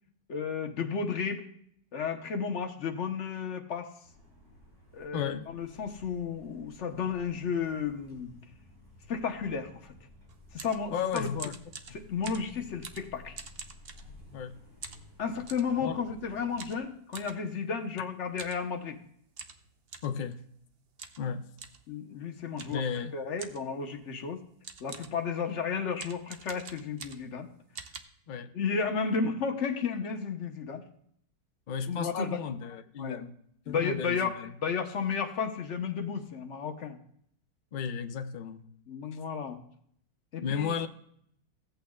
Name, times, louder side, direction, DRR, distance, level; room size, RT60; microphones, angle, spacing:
voice 1, 0.3-1.5 1.9-3.9 4.9-8.3 9.1-9.9 10.5-11.3 11.9-13.4 15.2-19.0 21.9-22.8 23.1-24.4 24.8-27.5 28.5-30.8 31.9-32.4 33.0-33.2 33.7-34.3 34.6-37.0 38.9-39.6 40.3-40.7, left 6 dB, 50° left, 1.2 m, -33 dB
sound 1, 4.0-16.8, left 2 dB, 75° right, 5.0 m, -55 dB
voice 2, 5.1-5.5 10.9-11.6 11.9-12.0 14.3-14.6 15.8-16.0 20.0-20.4 21.2-21.5 22.7-23.2 28.3-28.5 31.7-33.4 33.7-34.5 37.7-38.7 40.4-40.9, left 7 dB, 80° left, 0.4 m, -34 dB
sound 2, 10.3-14.5 14.8-15.7 16.6-17.4 18.3-18.6 18.9-19.0 19.3-20.2 21.0-21.3 21.6-21.8 22.6-22.9 23.4-23.7 24.3-24.4 24.6-25.2 25.9-27.4 27.7-28.0, right 5 dB, 50° right, 0.8 m, -45 dB
16.0 x 8.6 x 2.3 m
omnidirectional pair, 1.7 m